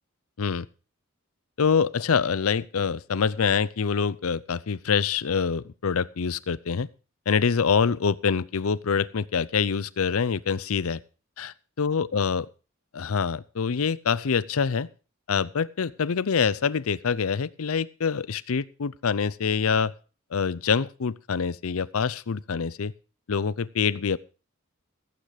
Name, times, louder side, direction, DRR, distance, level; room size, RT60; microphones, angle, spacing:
voice 1, 1.6-6.9 7.3-11.0 11.4-11.5 11.8-12.5 12.9-14.9 15.3-19.9 20.3-22.9 23.3-24.2, left 6 dB, 75° left, 20 dB, 0.6 m, -25 dB
15.0 x 9.0 x 4.9 m, 0.35 s
head